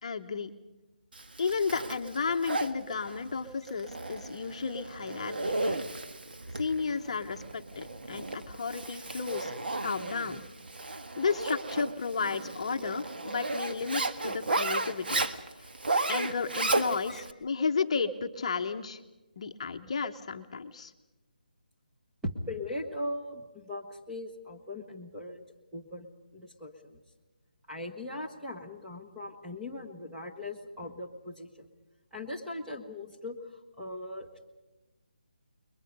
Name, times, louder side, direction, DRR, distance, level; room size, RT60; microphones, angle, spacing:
voice 1, 0.0-0.5 1.4-5.4 5.7-5.8 6.5-10.4 11.2-15.2 16.1-19.0 19.4-20.9, left 5 dB, 40° left, 5 dB, 1.0 m, -33 dB
Zipper (clothing), 1.1-17.3, right 2 dB, 85° right, 1.6 m, -34 dB
voice 2, 22.2-25.4 25.7-27.0 27.7-31.7 32.1-34.5, left 1 dB, 5° right, -3 dB, 1.3 m, -39 dB
29.5 x 22.0 x 5.4 m, 1.1 s
hypercardioid pair, 170°, 5 cm